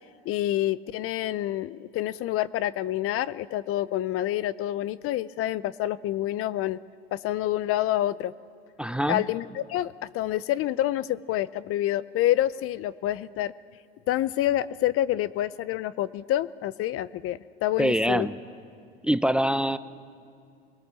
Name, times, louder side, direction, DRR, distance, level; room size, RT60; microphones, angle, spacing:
voice 1, 0.3-6.8 7.1-8.3 9.1-13.5 14.1-18.3, left 13 dB, 45° left, 18 dB, 0.6 m, -27 dB
voice 2, 8.8-9.2 17.8-18.4 19.0-19.8, equal, 5° right, 14 dB, 0.7 m, -24 dB
25.0 x 19.5 x 7.0 m, 2.5 s
hypercardioid pair, 80°, 30 cm